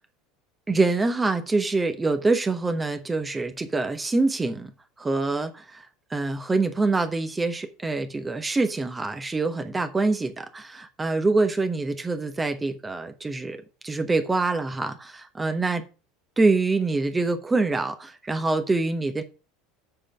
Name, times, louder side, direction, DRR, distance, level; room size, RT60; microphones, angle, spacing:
voice 1, 0.7-4.7 5.0-15.9 16.4-19.2, right 3 dB, 15° right, 1.1 m, -25 dB
7.8 x 5.1 x 7.3 m
figure-of-eight pair, 70°, 0 cm